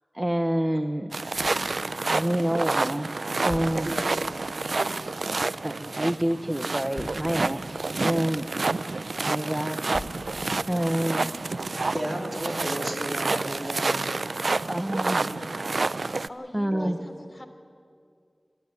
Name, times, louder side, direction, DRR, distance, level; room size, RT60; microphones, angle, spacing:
voice 1, 0.1-1.1 2.1-3.1 3.4-3.9 5.6-8.5 9.3-9.8 10.7-11.3 14.7-15.8 16.5-17.0, right 1 dB, 15° right, 7 dB, 0.9 m, -28 dB
sound 1, 1.1-16.3, right 3 dB, 75° right, 0.5 m, -29 dB
sound 2, 1.3-6.4 6.9-9.3 9.9-11.9 12.4-12.5, left 2 dB, 65° left, 1.2 m, -46 dB
voice 2, 11.9-14.0 15.2-15.5 16.7-16.9, equal, 45° right, 1 dB, 3.3 m, -33 dB
voice 3, 16.3-17.5, left 1 dB, 35° left, 4 dB, 2.6 m, -42 dB
25.0 x 14.0 x 9.8 m, 2.3 s
wide cardioid pair, 55°, 0 cm